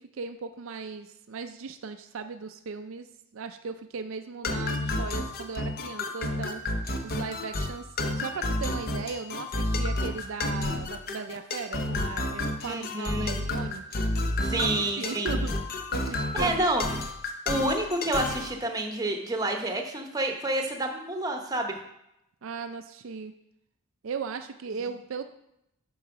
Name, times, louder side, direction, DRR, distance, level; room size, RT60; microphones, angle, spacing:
voice 1, 0.1-3.1 3.3-6.6 7.0-7.9 8.1-13.8 14.5-14.7 15.0-15.5 15.9-16.9 22.4-23.3 24.0-25.3, right 5 dB, 60° right, 7 dB, 0.4 m, -37 dB
sound 1, 4.4-18.5, left 2 dB, 40° left, 0.7 m, -30 dB
voice 2, 12.6-13.4 14.4-15.3 16.3-16.8 17.5-21.7, right 1 dB, 15° right, 3 dB, 0.8 m, -29 dB
7.2 x 4.6 x 5.8 m, 0.83 s
head